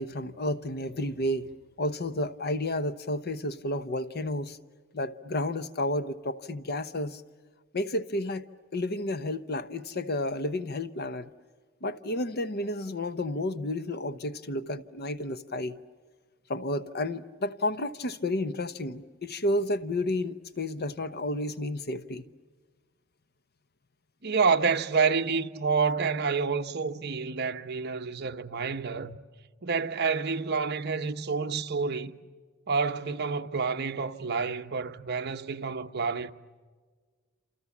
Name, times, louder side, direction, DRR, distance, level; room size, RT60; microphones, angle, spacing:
voice 1, 0.0-4.6 4.9-7.2 7.7-8.4 8.7-11.3 11.8-15.8 16.5-22.2, left 1 dB, 50° left, 0.9 m, -31 dB
voice 2, 24.2-29.2 29.6-32.2 32.7-36.3, right 5 dB, 50° right, 1.0 m, -28 dB
28.5 x 28.0 x 7.3 m
head